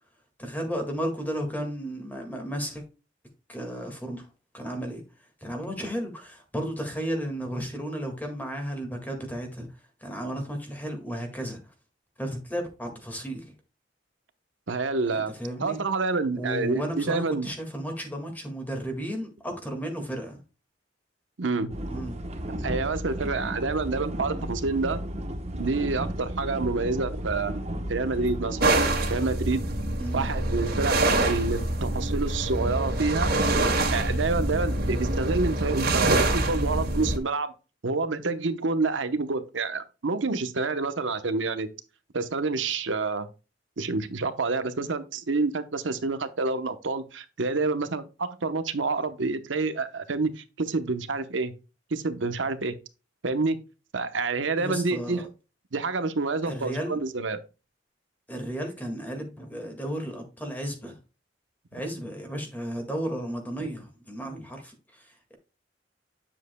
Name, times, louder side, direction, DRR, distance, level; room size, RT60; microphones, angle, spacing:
voice 1, 0.4-2.8 3.5-4.3 4.5-5.0 5.4-9.7 10.0-11.6 12.2-13.5 15.1-15.8 16.4-20.4 21.9-22.2 30.0-30.3 54.6-55.2 56.5-57.0 58.3-61.0 61.7-65.3, equal, 10° left, 1.8 m, -34 dB
voice 2, 14.7-15.3 15.6-17.5 21.4-21.7 22.6-25.0 25.5-27.5 27.9-28.7 29.1-29.6 30.1-31.0 31.2-33.3 33.9-37.5 37.8-41.7 42.1-43.3 43.8-51.5 51.9-52.7 53.2-53.6 53.9-55.3 55.7-57.4, right 3 dB, 85° right, 0.9 m, -28 dB
sound 1, 21.7-28.8, equal, 35° right, 1.0 m, -34 dB
sound 2, 28.6-37.2, right 2 dB, 55° right, 2.0 m, -25 dB
8.9 x 7.3 x 2.2 m
head